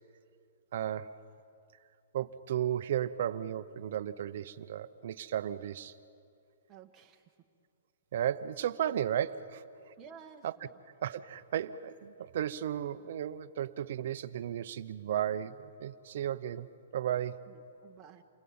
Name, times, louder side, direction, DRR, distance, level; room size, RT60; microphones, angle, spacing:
voice 1, 0.7-1.2 2.1-5.9 8.1-9.6 10.4-10.6 11.0-17.5, right 10 dB, 45° right, 0.8 m, -34 dB
voice 2, 6.7-7.2 10.0-10.7 17.5-18.2, right 7 dB, 15° right, 1.5 m, -53 dB
29.0 x 22.5 x 8.8 m
hypercardioid pair, 175°, 0 cm